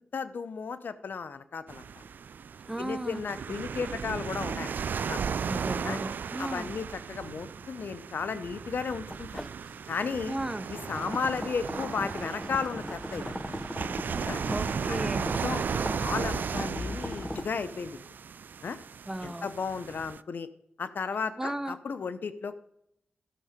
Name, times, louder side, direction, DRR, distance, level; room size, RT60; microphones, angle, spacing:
voice 1, 0.0-2.0 2.8-5.2 5.8-6.0 6.4-9.4 9.9-10.4 10.7-13.6 14.2-14.4 14.9-15.6 16.0-18.0 18.6-18.8 19.2-20.5 20.8-22.6, left 5 dB, 75° left, 13 dB, 0.7 m, -34 dB
sound 1, 1.7-20.2, right 6 dB, 75° right, 0.3 m, -36 dB
voice 2, 2.7-3.2 5.4-6.7 10.3-10.7 14.5-15.3 19.1-19.5 21.4-21.8, right 1 dB, 15° right, 12 dB, 0.9 m, -35 dB
sound 2, 9.1-17.4, left 1 dB, 5° left, 0.6 m, -39 dB
12.5 x 6.7 x 5.1 m, 0.75 s
cardioid pair, 55°, 3 cm